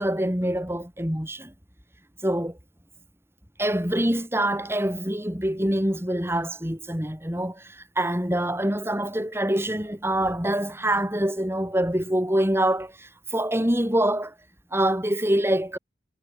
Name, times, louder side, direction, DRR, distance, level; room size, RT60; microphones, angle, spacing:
voice 1, 0.0-1.5 2.2-2.5 3.6-14.3 14.7-15.8, right 1 dB, 15° right, 5.0 m, -25 dB
head